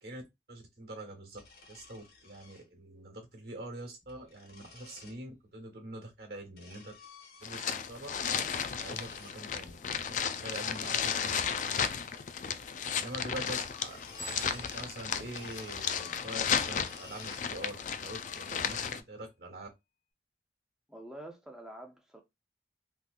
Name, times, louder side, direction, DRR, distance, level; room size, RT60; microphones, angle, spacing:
voice 1, 0.5-1.4 1.7-6.9 7.4-8.1 8.8-12.0 13.0-14.0 14.3-19.7, right 1 dB, 60° right, 1.3 m, -45 dB
sound 1, 1.3-2.6 3.9-5.2 6.1-7.7 8.0-9.4 10.6-12.2 12.5-12.6 12.9-13.3 13.5-15.0 15.3-17.5 17.9-18.8, left 4 dB, 60° left, 1.0 m, -53 dB
sound 2, 7.4-19.0, left 7 dB, 45° left, 0.3 m, -34 dB
sound 3, 14.2-16.7, right 3 dB, 80° left, 1.6 m, -50 dB
voice 2, 20.9-22.2, right 1 dB, 5° right, 0.7 m, -47 dB
3.7 x 3.0 x 2.4 m
head